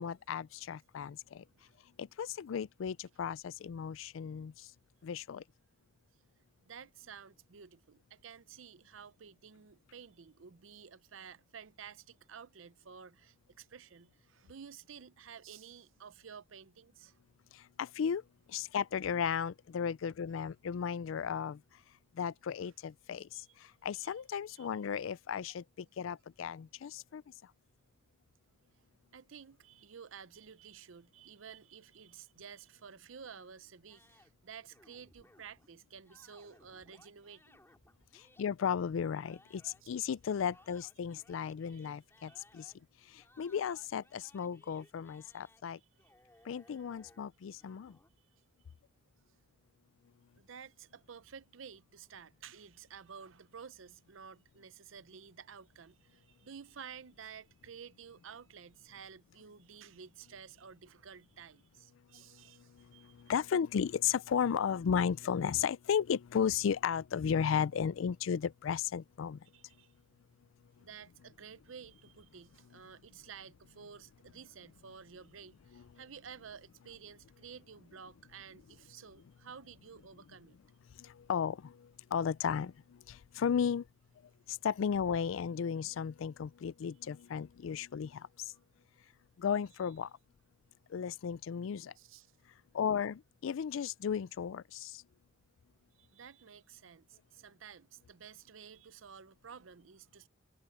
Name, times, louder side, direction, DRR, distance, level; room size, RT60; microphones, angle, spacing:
voice 1, 0.0-1.4 2.0-4.7 5.0-5.4 17.5-18.2 18.5-21.6 22.2-23.4 23.8-27.2 38.1-42.7 43.1-45.8 46.5-48.0 62.1-62.2 62.7-69.4 81.0-83.8 84.5-88.3 89.4-90.1 90.9-91.9 92.7-95.0, left 7 dB, 80° left, 0.4 m, -35 dB
voice 2, 6.6-17.2 22.6-22.7 23.3-23.5 23.9-24.2 24.5-24.7 29.1-37.6 39.8-39.9 41.7-41.9 42.2-42.4 44.1-44.2 45.7-45.9 50.4-63.2 69.5-69.9 70.8-80.6 92.0-92.3 95.9-100.3, right 7 dB, 80° right, 0.6 m, -52 dB
sound 1, 33.9-35.7 36.1-39.8 40.2-42.8 43.2-45.6 46.0-48.1, left 1 dB, 15° left, 5.1 m, -64 dB
head